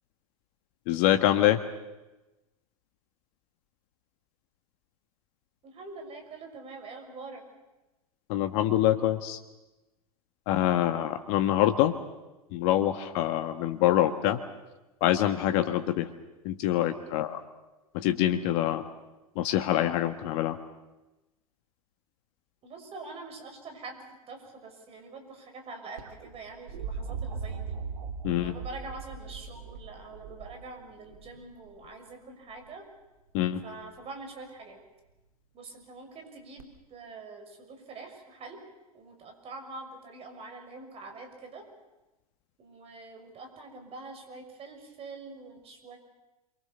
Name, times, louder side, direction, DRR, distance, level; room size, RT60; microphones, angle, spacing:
voice 1, 0.9-1.6 8.3-9.4 10.5-11.9 12.5-14.4 15.0-16.1 16.4-17.4 17.9-18.8 19.4-20.6 28.2-28.5 33.3-33.6, left 13 dB, 50° left, 8 dB, 1.5 m, -25 dB
voice 2, 5.6-7.4 16.9-17.1 22.6-27.8 28.4-32.8 33.6-34.8 35.5-38.6 38.9-41.7 42.6-46.0, right 3 dB, 30° right, 5 dB, 6.5 m, -45 dB
sound 1, 26.0-31.9 33.5-34.0 36.6-36.7, right 5 dB, 75° right, 2.6 m, -39 dB
29.0 x 24.0 x 6.9 m, 1.1 s
hypercardioid pair, 100°, 19 cm